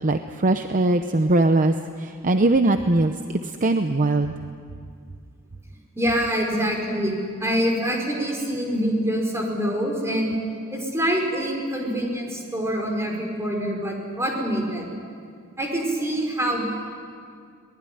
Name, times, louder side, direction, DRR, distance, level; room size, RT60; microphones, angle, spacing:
voice 1, 0.0-4.3, right 2 dB, 40° right, 8 dB, 0.8 m, -21 dB
voice 2, 5.9-7.1 7.4-10.3 10.7-14.9 15.6-16.7, equal, 15° right, 0 dB, 5.0 m, -25 dB
23.5 x 19.5 x 10.0 m, 2.2 s
head